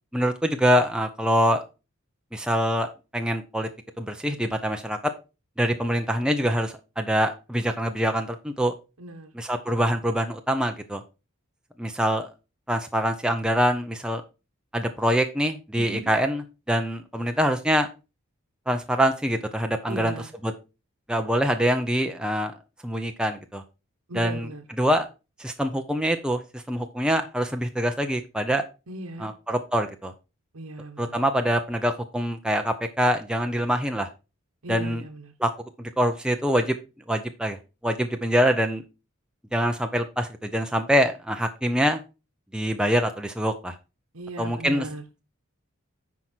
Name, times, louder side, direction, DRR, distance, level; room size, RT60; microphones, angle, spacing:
voice 1, 0.1-1.6 2.3-2.9 3.1-3.7 4.0-5.0 5.6-8.7 9.3-11.0 11.8-12.3 12.7-14.2 14.7-17.9 18.7-20.1 20.4-20.5 21.1-22.6 22.8-23.6 24.1-24.5 24.8-25.1 25.4-28.6 29.2-30.1 31.0-34.1 34.7-35.0 35.4-35.5 35.8-36.8 37.1-37.6 37.8-38.8 39.5-42.0 42.5-43.7 44.4-44.9, equal, 5° right, 5 dB, 0.5 m, -24 dB
voice 2, 9.0-9.3 15.8-16.1 19.9-20.3 24.1-24.6 28.9-29.3 30.5-31.2 34.6-35.3 44.1-45.0, right 2 dB, 80° right, 4 dB, 1.0 m, -37 dB
9.7 x 4.7 x 4.4 m, 0.29 s
head